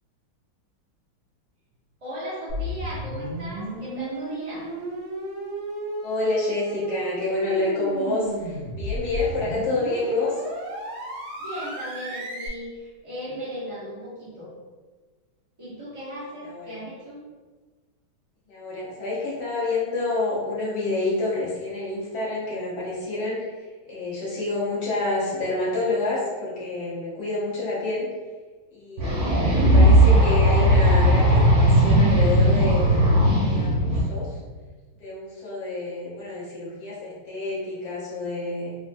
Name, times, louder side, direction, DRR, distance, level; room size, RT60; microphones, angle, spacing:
voice 1, 2.0-4.7 11.4-14.5 15.6-17.2, equal, 40° right, -9 dB, 0.4 m, -36 dB
sound 1, 2.5-12.5, right 1 dB, 75° right, 1.4 m, -33 dB
voice 2, 6.0-10.4 16.4-16.8 18.5-28.1 28.7-33.0 33.5-34.4 35.0-38.8, left 2 dB, 85° left, -8 dB, 0.5 m, -28 dB
sound 2, 29.0-34.0, equal, 55° right, 1.5 m, -17 dB
3.6 x 2.1 x 2.5 m, 1.3 s
omnidirectional pair, 2.3 m